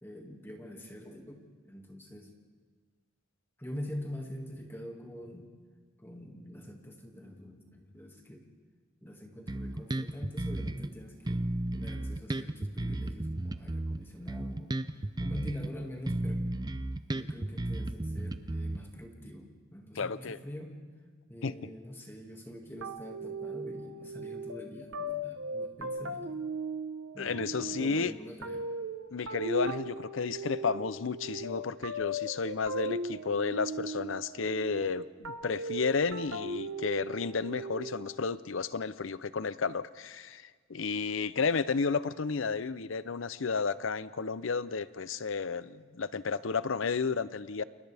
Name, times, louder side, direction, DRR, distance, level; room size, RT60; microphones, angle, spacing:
voice 1, 0.0-2.3 3.6-5.5 6.0-8.4 9.0-11.5 11.7-14.7 15.2-16.4 17.1-20.8 21.3-26.3 27.1-28.7, equal, 10° left, 1 dB, 2.2 m, -44 dB
Bass guitar, 9.5-10.9 11.3-15.7 16.1-19.1, right 1 dB, 20° right, 0.5 m, -34 dB
voice 2, 20.0-20.4 21.4-21.7 27.2-28.1 29.1-47.6, left 5 dB, 65° left, 15 dB, 0.6 m, -32 dB
sound 1, 22.8-38.2, right 1 dB, 75° right, 1.1 m, -38 dB
29.5 x 29.0 x 3.5 m, 1.5 s
head